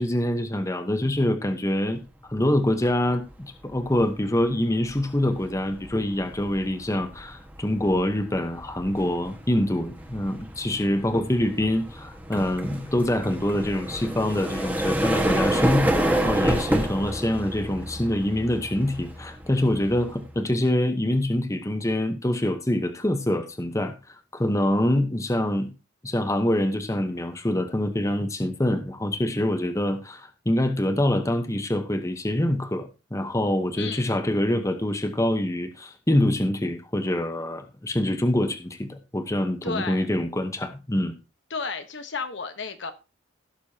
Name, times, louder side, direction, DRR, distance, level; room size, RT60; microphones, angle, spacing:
voice 1, 0.0-2.0 2.3-25.7 26.0-41.2, left 1 dB, 15° left, 8 dB, 0.9 m, -25 dB
sound 1, 3.0-3.3 3.7-20.4, right 1 dB, 10° right, 1.4 m, -29 dB
voice 2, 33.8-34.1 39.6-40.1 41.5-42.9, left 4 dB, 60° left, 9 dB, 1.1 m, -32 dB
16.5 x 6.9 x 2.8 m, 0.28 s
head